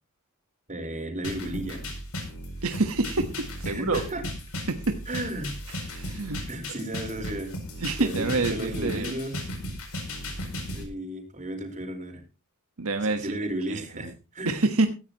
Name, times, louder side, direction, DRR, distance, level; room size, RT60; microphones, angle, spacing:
voice 1, 0.7-1.8 3.6-4.2 5.1-5.6 6.5-7.5 8.0-9.5 10.7-12.2 13.1-14.6, right 1 dB, 35° right, 4 dB, 4.5 m, -34 dB
sound 1, 1.2-10.8, left 1 dB, 75° left, 7.1 m, -36 dB
voice 2, 2.6-3.3 3.6-4.0 4.7-5.0 5.8-6.4 7.8-9.1 12.8-13.3 13.7-14.1 14.4-14.9, right 3 dB, 70° right, 6 dB, 1.4 m, -27 dB
17.0 x 15.0 x 3.0 m, 0.31 s
head